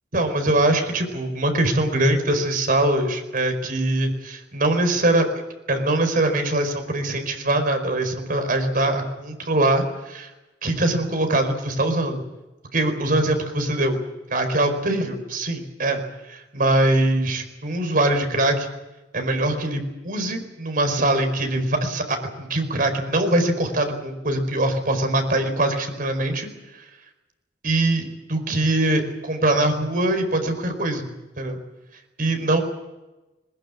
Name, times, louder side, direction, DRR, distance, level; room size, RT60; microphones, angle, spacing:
voice 1, 0.1-5.3 5.7-10.3 10.6-12.2 12.7-14.0 14.3-16.0 16.3-18.7 19.1-26.5 27.6-31.1 31.4-31.6 32.2-32.6, right 1 dB, 55° right, 6 dB, 4.7 m, -22 dB
21.0 x 20.5 x 8.8 m, 1.1 s
head